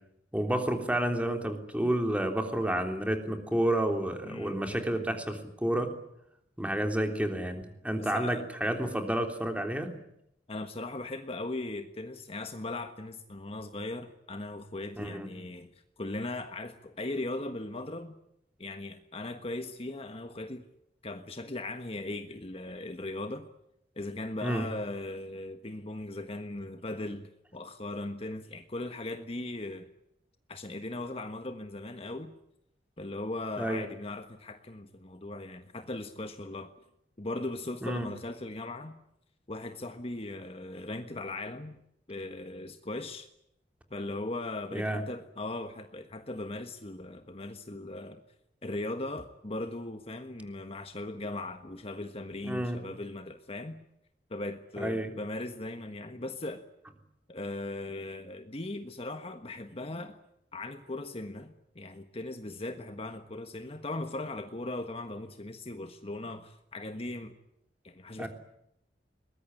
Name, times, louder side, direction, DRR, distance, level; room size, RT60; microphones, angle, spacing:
voice 1, 0.3-5.9 6.6-9.9 15.0-15.3 24.4-24.6 33.6-33.8 37.8-38.1 44.7-45.0 52.5-52.8 54.8-55.1 68.2-68.3, right 1 dB, 10° right, 5 dB, 3.4 m, -30 dB
voice 2, 4.2-5.2 8.0-8.5 10.5-15.7 16.0-18.1 18.6-20.6 21.0-23.5 23.9-29.9 30.5-32.3 33.0-36.7 37.2-39.0 39.5-41.8 42.1-43.3 43.9-48.2 48.6-53.8 54.3-56.7 57.3-60.2 60.5-67.3 67.8-68.3, left 2 dB, 35° left, 7 dB, 1.4 m, -38 dB
22.5 x 20.5 x 9.8 m, 0.78 s
head